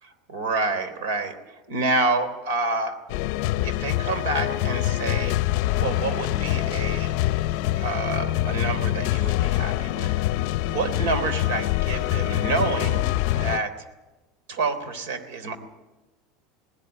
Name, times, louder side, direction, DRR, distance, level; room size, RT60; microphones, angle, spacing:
voice 1, 0.0-3.0 3.6-5.3 5.8-7.1 7.8-13.7 14.5-15.6, right 3 dB, 80° right, 11 dB, 3.3 m, -28 dB
sound 1, 3.1-13.6, left 15 dB, 55° left, 0.6 m, -25 dB
19.0 x 18.0 x 9.0 m, 1.1 s
cardioid pair, 175°, 0 cm